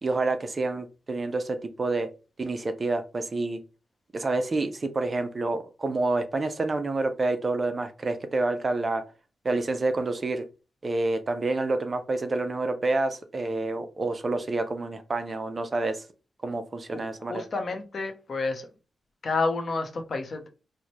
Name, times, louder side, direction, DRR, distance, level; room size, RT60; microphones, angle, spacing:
voice 1, 0.0-2.1 2.4-3.6 4.1-9.0 9.4-10.4 10.8-16.0 16.4-17.4, right 2 dB, 35° right, 9 dB, 0.5 m, -28 dB
voice 2, 16.9-18.7 19.2-20.5, left 3 dB, 50° left, 5 dB, 0.7 m, -30 dB
4.4 x 2.1 x 3.0 m, 0.32 s
wide cardioid pair, 120°, 0 cm